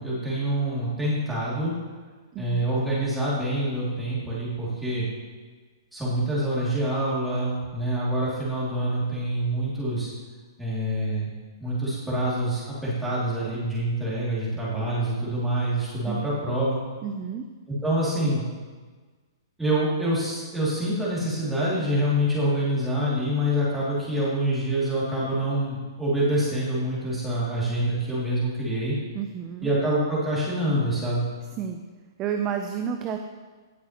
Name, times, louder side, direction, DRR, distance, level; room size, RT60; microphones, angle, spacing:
voice 1, 0.0-1.7 2.4-5.1 5.9-10.1 10.6-11.3 11.6-16.8 17.7-18.4 19.6-28.9 29.6-31.3, right 1 dB, 5° right, -9 dB, 2.5 m, -26 dB
voice 2, 2.3-2.7 16.0-16.2 17.0-17.4 29.1-29.7 31.5-31.8 32.2-33.2, right 8 dB, 20° right, 5 dB, 0.4 m, -30 dB
17.5 x 6.2 x 2.9 m, 1.4 s
hypercardioid pair, 160°, 2 cm